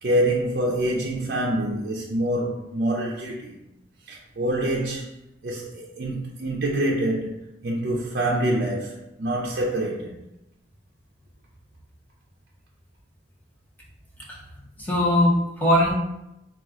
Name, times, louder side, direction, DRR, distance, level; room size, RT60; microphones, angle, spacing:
voice 1, 0.0-3.6 4.1-5.1 5.4-7.3 7.6-10.2, right 1 dB, 55° right, 0.5 m, -26 dB
voice 2, 14.8-15.9, left 1 dB, 10° left, 1.0 m, -20 dB
4.4 x 2.4 x 3.6 m
head